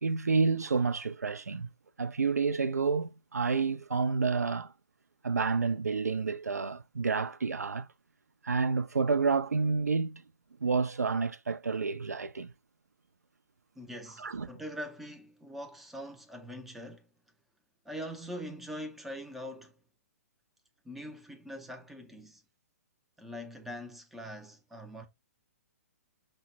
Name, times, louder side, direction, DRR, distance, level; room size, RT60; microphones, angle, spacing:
voice 1, 0.0-1.7 2.0-4.7 5.2-7.9 8.4-10.2 10.6-12.5 14.2-14.5, right 4 dB, 75° right, 0.4 m, -29 dB
voice 2, 13.8-17.1 17.8-19.7 20.8-22.4 23.2-25.1, equal, ahead, 0.4 m, -43 dB
5.4 x 2.1 x 3.0 m
figure-of-eight pair, 120°, 9 cm